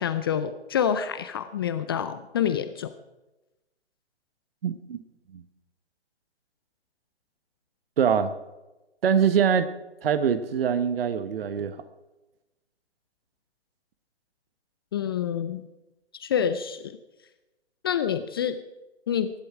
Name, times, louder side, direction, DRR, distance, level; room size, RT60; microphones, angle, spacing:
voice 1, 0.0-2.9 14.9-15.6 16.2-17.0 17.8-18.6 19.1-19.3, left 8 dB, 20° left, 11 dB, 0.4 m, -27 dB
voice 2, 4.6-5.0 5.3-5.4 8.0-8.3 9.0-9.7 10.0-11.8, right 7 dB, 55° right, 12 dB, 1.2 m, -23 dB
23.0 x 11.5 x 4.9 m, 1.0 s
figure-of-eight pair, 130°, 35 cm